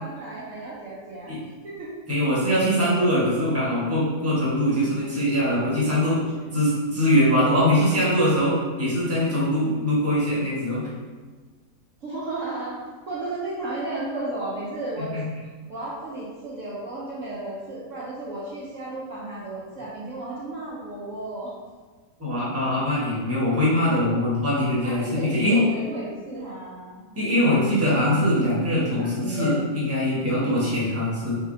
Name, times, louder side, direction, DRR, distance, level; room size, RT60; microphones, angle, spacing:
voice 1, 0.0-1.4 1.6-1.9 2.9-3.0 7.3-8.0 12.0-12.8 13.1-15.1 15.7-21.5 24.8-27.1 28.7-29.6, right 2 dB, 55° right, -8 dB, 1.1 m, -33 dB
voice 2, 2.1-6.2 6.5-10.8 15.1-15.2 22.2-25.6 27.1-31.4, equal, 10° right, -8 dB, 1.2 m, -22 dB
4.1 x 3.9 x 2.6 m, 1.4 s
omnidirectional pair, 1.7 m